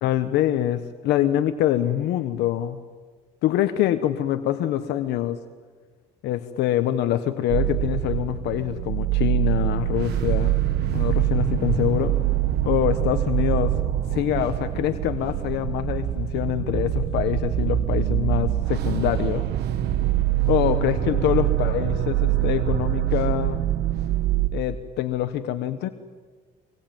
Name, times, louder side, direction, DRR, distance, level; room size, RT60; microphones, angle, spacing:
voice 1, 0.0-2.8 3.4-5.4 6.2-10.6 10.9-12.2 12.6-13.7 14.1-19.5 20.5-23.6 24.5-25.9, left 12 dB, 85° left, 9 dB, 1.3 m, -25 dB
sound 1, 7.5-24.5, right 12 dB, 75° right, 1.4 m, -24 dB
25.0 x 22.0 x 9.2 m, 1.4 s
cardioid pair, 110°, 17 cm